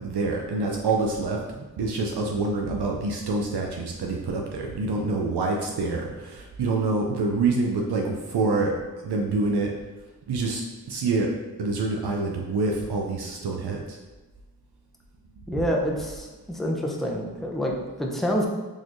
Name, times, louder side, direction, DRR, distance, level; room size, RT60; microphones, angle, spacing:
voice 1, 0.0-8.8 9.0-9.8 10.3-14.0, right 3 dB, 80° right, 0 dB, 0.5 m, -26 dB
voice 2, 15.5-18.5, equal, ahead, -1 dB, 0.6 m, -27 dB
3.9 x 3.0 x 2.6 m, 1.2 s
cardioid pair, 40°, 39 cm